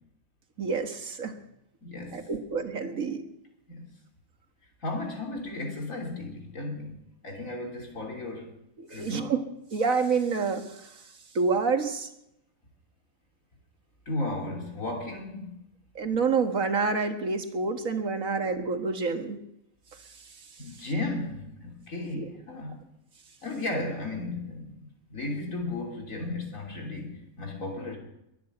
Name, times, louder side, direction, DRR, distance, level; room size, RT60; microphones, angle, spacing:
voice 1, 0.6-1.3 2.1-3.2 8.8-9.4 9.7-11.0 11.3-12.1 16.0-19.4 22.1-22.3, right 4 dB, 75° right, 5 dB, 2.1 m, -28 dB
voice 2, 1.8-2.3 3.7-3.9 4.8-8.5 8.9-9.3 14.1-15.6 20.6-22.8 23.4-28.0, left 2 dB, 75° left, 0 dB, 3.7 m, -35 dB
22.5 x 7.8 x 8.1 m, 0.83 s
omnidirectional pair, 1.4 m